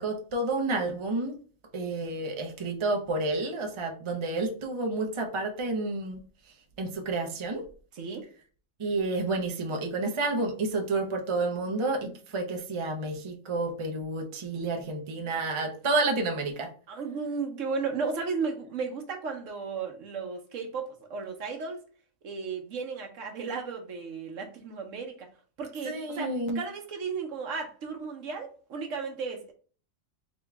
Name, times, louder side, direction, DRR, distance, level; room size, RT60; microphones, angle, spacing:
voice 1, 0.0-1.3 1.7-6.2 6.8-7.6 8.8-16.7 25.8-26.6, right 2 dB, 30° right, 3 dB, 0.5 m, -30 dB
voice 2, 7.9-8.3 12.0-12.1 16.9-21.8 22.2-25.3 25.6-26.3 26.5-29.5, right 5 dB, 65° right, 3 dB, 1.2 m, -34 dB
3.8 x 3.1 x 3.4 m, 0.41 s
omnidirectional pair, 1.4 m